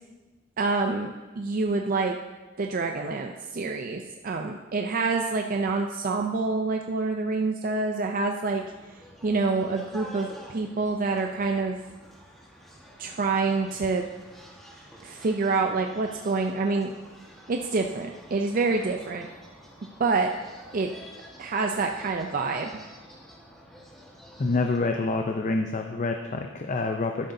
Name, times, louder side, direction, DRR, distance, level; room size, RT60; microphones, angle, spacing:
voice 1, 0.6-2.2 2.6-8.6 9.2-11.8 13.0-14.1 15.0-16.9 17.5-19.3 20.0-20.3 20.7-20.9 21.4-22.8, right 3 dB, 45° right, 3 dB, 0.5 m, -27 dB
sound 1, 8.5-24.8, equal, ahead, 1.4 m, -49 dB
voice 2, 24.4-27.3, left 3 dB, 40° left, 4 dB, 0.5 m, -27 dB
12.0 x 10.5 x 2.7 m, 1.3 s
head